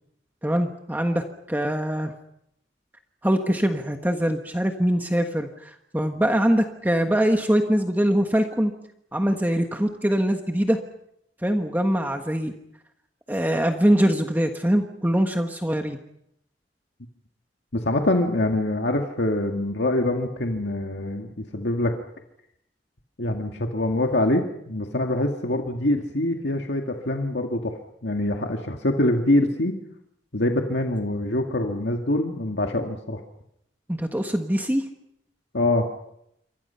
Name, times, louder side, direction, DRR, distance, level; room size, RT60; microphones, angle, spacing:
voice 1, 0.4-1.2 1.5-2.1 3.2-8.7 9.1-10.8 11.4-12.5 13.3-16.0 33.9-34.8, equal, 10° right, 4 dB, 1.4 m, -23 dB
voice 2, 17.7-21.9 23.2-27.8 28.0-29.7 30.3-33.2 35.5-35.9, left 1 dB, 70° left, 3 dB, 2.0 m, -24 dB
28.0 x 25.0 x 5.7 m, 0.78 s
head